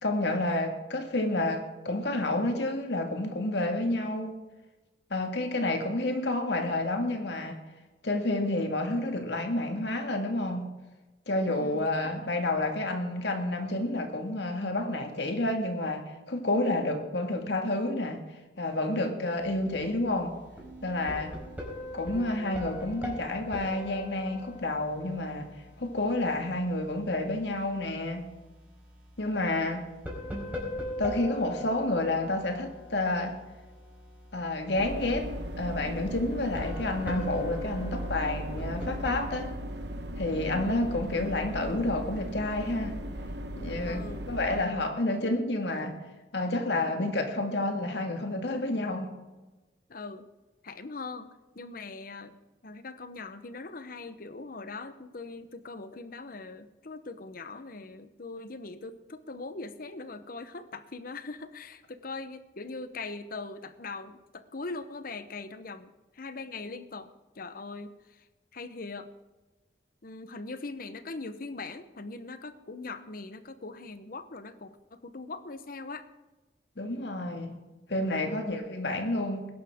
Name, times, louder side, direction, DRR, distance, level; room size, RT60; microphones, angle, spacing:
voice 1, 0.0-4.4 5.1-7.6 8.0-10.8 11.3-18.2 18.6-20.4 20.8-21.4 21.9-25.5 25.8-28.3 29.2-29.9 31.0-33.4 34.3-35.3 35.6-39.6 40.1-43.0 43.6-46.0 46.3-49.1 76.8-77.6 77.9-79.5, left 2 dB, 75° left, 4 dB, 1.9 m, -29 dB
voice 2, 11.4-12.3 40.5-40.8 43.9-44.9 49.9-50.3 50.6-51.3 51.5-52.4 52.6-68.3 68.5-69.1 70.0-76.1 78.2-78.6, left 3 dB, 55° left, 12 dB, 0.9 m, -41 dB
sound 1, 19.4-39.3, left 1 dB, 10° right, 4.4 m, -42 dB
sound 2, 34.8-44.6, equal, 70° right, 1.2 m, -37 dB
20.5 x 11.0 x 3.6 m, 1.2 s
head